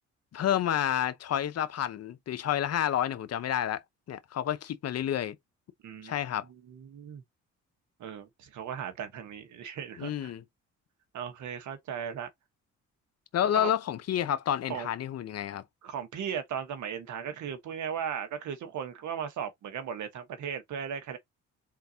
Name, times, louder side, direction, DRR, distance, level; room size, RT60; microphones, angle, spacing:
voice 1, 0.3-3.8 4.1-5.4 6.0-6.4 10.0-10.4 13.3-15.6, left 10 dB, 55° left, 0.8 m, -29 dB
voice 2, 5.8-6.1 6.7-7.2 8.0-10.3 11.1-12.3 13.5-13.7 14.7-14.9 15.8-21.2, right 8 dB, 70° right, 1.3 m, -37 dB
4.4 x 3.9 x 2.8 m
cardioid pair, 90°, 30 cm